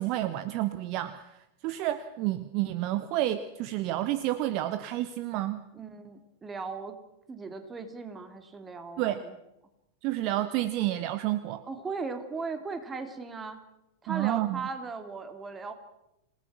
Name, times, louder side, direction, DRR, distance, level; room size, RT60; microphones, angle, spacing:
voice 1, 0.0-5.6 9.0-9.2 10.0-11.6 14.1-14.6, right 14 dB, 40° right, 14 dB, 0.9 m, -30 dB
voice 2, 5.7-7.0 7.3-9.4 11.7-13.6 14.0-15.7, right 4 dB, 15° right, 8 dB, 2.7 m, -38 dB
27.0 x 18.5 x 6.2 m, 0.89 s
figure-of-eight pair, 90°, 0 cm